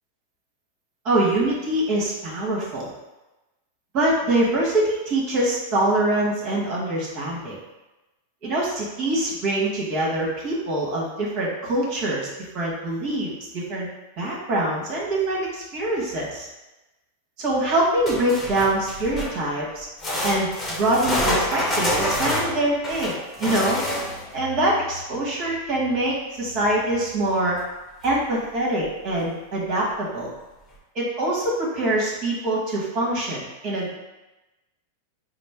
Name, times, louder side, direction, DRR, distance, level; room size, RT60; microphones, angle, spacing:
voice 1, 1.0-2.9 3.9-7.6 8.4-12.3 12.5-13.9 14.2-16.5 17.4-19.9 20.2-23.8 24.3-27.6 28.0-30.3 30.9-33.9, right 1 dB, 45° right, -4 dB, 1.4 m, -24 dB
sound 1, 18.1-19.4 20.0-24.3 27.6-27.7 28.0-28.1 28.8-28.9, left 1 dB, 15° left, 1.0 m, -27 dB
4.0 x 2.0 x 3.5 m, 1.0 s
hypercardioid pair, 105°, 0 cm